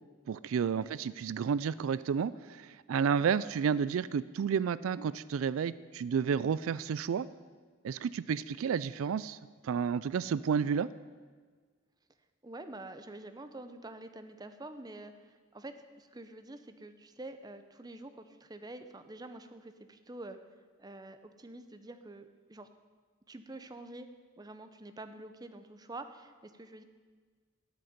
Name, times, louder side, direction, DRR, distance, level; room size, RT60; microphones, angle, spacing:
voice 1, 0.3-7.3 7.8-9.4 9.6-10.9, right 7 dB, 85° right, 17 dB, 0.3 m, -31 dB
voice 2, 12.4-20.4 20.8-22.7 23.3-24.1 24.4-26.8, right 2 dB, 20° right, 9 dB, 0.6 m, -47 dB
13.0 x 6.5 x 9.5 m, 1.5 s
head